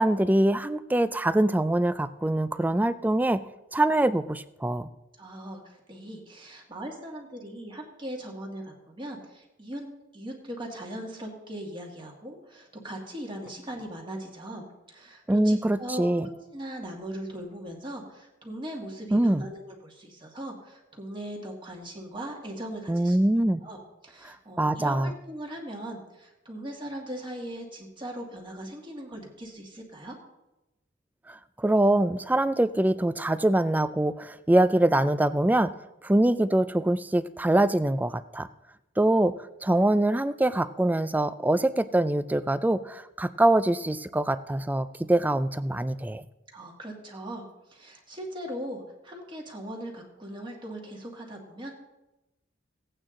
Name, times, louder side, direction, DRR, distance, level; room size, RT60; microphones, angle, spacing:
voice 1, 0.0-3.4 3.7-4.9 15.3-16.3 19.1-19.4 22.9-23.6 24.3-25.1 31.3-35.7 36.0-38.5 39.0-39.3 39.6-46.2, right 1 dB, 10° right, 14 dB, 0.4 m, -24 dB
voice 2, 5.2-9.9 10.1-23.2 23.6-30.2 46.5-51.7, right 1 dB, 25° right, 0 dB, 1.8 m, -39 dB
16.5 x 8.9 x 3.8 m, 0.97 s
head